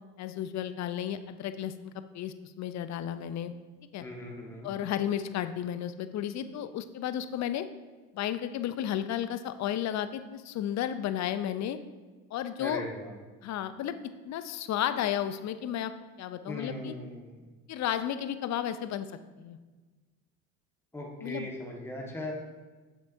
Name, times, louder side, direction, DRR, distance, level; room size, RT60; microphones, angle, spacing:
voice 1, 0.2-3.5 3.9-4.0 4.6-7.7 8.1-11.8 12.3-12.8 13.4-14.0 14.2-15.9 16.2-16.9 17.7-19.1 19.4-19.6 21.2-21.5, left 10 dB, 45° left, 12 dB, 0.5 m, -33 dB
voice 2, 4.0-4.7 12.6-13.1 16.4-17.3 20.9-22.3, left 1 dB, 5° left, -2 dB, 1.5 m, -39 dB
7.4 x 7.3 x 2.7 m, 1.3 s
hypercardioid pair, 70°, 40 cm